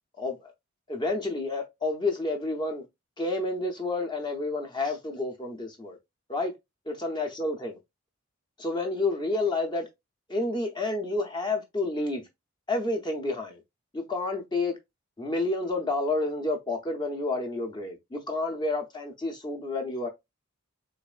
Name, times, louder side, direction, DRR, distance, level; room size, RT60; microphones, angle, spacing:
voice 1, 0.2-0.5 0.9-2.8 3.2-6.0 6.3-6.5 6.9-7.8 8.6-9.9 10.3-12.3 12.7-13.6 13.9-14.8 15.2-20.1, left 2 dB, 20° left, 0.6 m, -30 dB
4.0 x 3.0 x 2.3 m
head